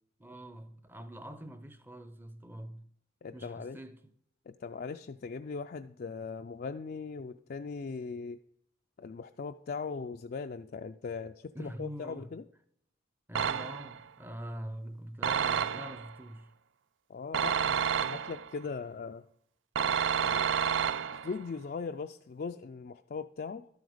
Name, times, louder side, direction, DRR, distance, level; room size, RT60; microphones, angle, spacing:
voice 1, 0.2-2.9 3.3-4.1 11.5-12.3 13.3-16.5, equal, 10° right, 0.6 m, -44 dB
voice 2, 3.2-3.8 4.5-8.4 9.0-12.4 17.1-19.2 20.2-20.5 21.1-23.7, left 5 dB, 50° left, 0.3 m, -39 dB
sound 1, 13.4-14.0 15.2-16.1 17.3-18.5 19.8-21.4, right 7 dB, 80° right, 0.4 m, -30 dB
12.0 x 7.9 x 4.9 m
head